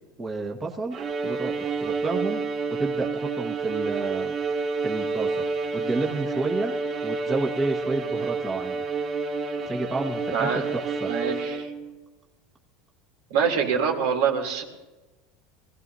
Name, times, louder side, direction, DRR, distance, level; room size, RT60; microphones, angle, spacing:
voice 1, 0.2-1.0 1.2-2.4 2.7-4.3 4.8-5.4 5.7-6.8 7.0-8.8 9.6-11.1, right 3 dB, 25° right, 1 dB, 1.5 m, -30 dB
Bowed string instrument, 0.9-11.9, right 4 dB, 45° right, 2.9 m, -29 dB
voice 2, 10.3-10.6 11.0-11.7 13.3-14.6, right 6 dB, 80° right, 0 dB, 3.1 m, -25 dB
24.0 x 16.0 x 2.8 m, 1.1 s
supercardioid pair, 125°, 0 cm